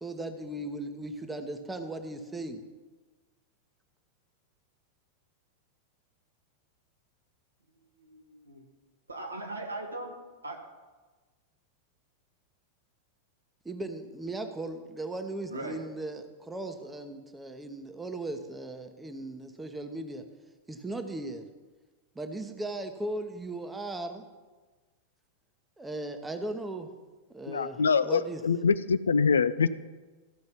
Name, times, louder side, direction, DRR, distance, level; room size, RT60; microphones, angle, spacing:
voice 1, 0.0-2.6 13.6-20.2 20.7-21.4 22.1-24.2 25.8-26.9 27.3-28.4, right 2 dB, 10° right, 7 dB, 1.0 m, -37 dB
voice 2, 8.0-8.6 9.1-10.1 10.4-10.6 15.5-15.8, right 2 dB, 80° right, 2 dB, 1.5 m, -39 dB
voice 3, 27.5-29.7, left 5 dB, 70° left, 15 dB, 0.4 m, -24 dB
13.5 x 5.3 x 6.0 m, 1.3 s
figure-of-eight pair, 90°, 0 cm